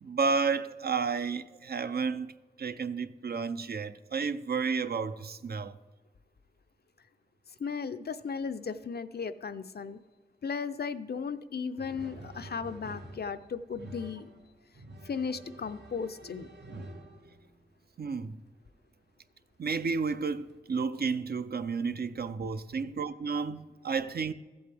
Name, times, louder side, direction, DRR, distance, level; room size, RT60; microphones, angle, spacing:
voice 1, 0.0-2.3 2.6-5.7 18.0-18.4 19.6-24.3, right 5 dB, 70° right, 0.5 m, -31 dB
voice 2, 7.6-10.0 10.4-14.3 15.0-16.5, left 5 dB, 70° left, 0.5 m, -36 dB
sound 1, 11.8-17.8 19.0-19.1 19.9-20.6, right 1 dB, 85° right, 0.9 m, -48 dB
14.5 x 7.9 x 3.4 m
wide cardioid pair, 60°, 17 cm